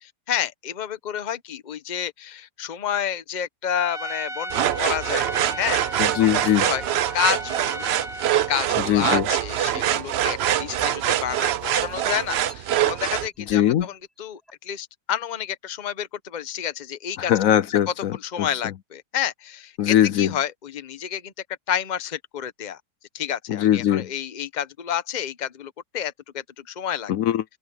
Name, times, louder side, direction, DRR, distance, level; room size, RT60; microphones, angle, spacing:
voice 1, 0.0-5.3 5.5-5.8 6.2-6.9 7.1-7.9 8.3-17.3 18.2-21.3 21.7-22.8 23.1-27.1, left 9 dB, 35° left, 0.9 m, -30 dB
Trumpet, 3.7-8.6, right 1 dB, 40° right, 1.5 m, -35 dB
sound 1, 4.5-13.3, right 11 dB, 80° right, 0.5 m, -24 dB
voice 2, 6.0-6.7 8.9-9.3 13.5-13.9 17.2-18.7 19.8-20.3 23.5-24.1 27.1-27.4, left 11 dB, 70° left, 0.9 m, -21 dB
sound 2, 9.5-11.1 11.5-13.9 14.5-14.6, equal, ahead, 4.5 m, -47 dB
omnidirectional pair, 1.8 m